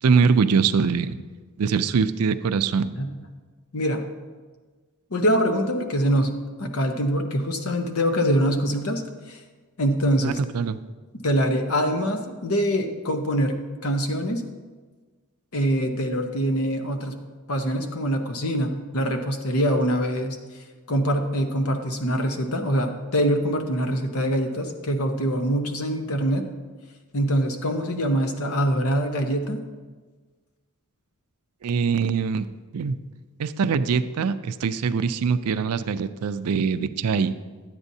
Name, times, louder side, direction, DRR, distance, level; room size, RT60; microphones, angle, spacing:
voice 1, 0.0-1.2 1.6-2.9 10.2-10.8 31.6-32.5 32.7-33.0 33.4-37.3, right 5 dB, 80° right, 13 dB, 0.4 m, -23 dB
voice 2, 3.7-4.0 5.1-9.0 9.3-9.4 9.8-10.4 11.2-14.4 15.5-17.2 17.5-20.4 20.9-26.4 27.1-29.6, equal, 70° left, 5 dB, 0.9 m, -24 dB
11.5 x 8.8 x 2.7 m, 1.4 s
head